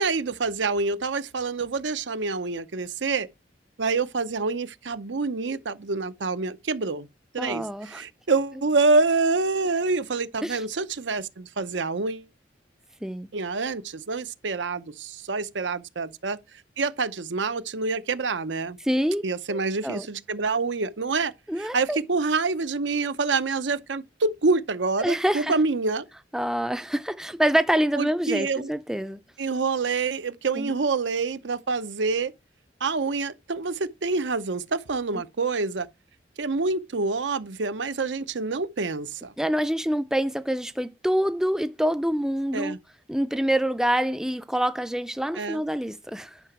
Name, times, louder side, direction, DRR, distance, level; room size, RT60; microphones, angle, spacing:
voice 1, 0.0-3.3 3.8-7.1 7.3-12.3 13.3-16.4 16.8-18.8 19.2-26.0 28.0-28.7 29.4-32.3 32.8-35.9 36.4-39.3 42.5-42.8 45.4-45.6, right 4 dB, 80° right, 0.8 m, -27 dB
voice 2, 7.4-8.0 10.4-10.6 13.0-13.3 18.8-20.1 21.5-22.0 25.0-25.6 26.3-29.2 30.5-30.7 39.4-42.8 43.1-46.4, equal, 5° right, 0.5 m, -26 dB
10.5 x 5.9 x 6.0 m
head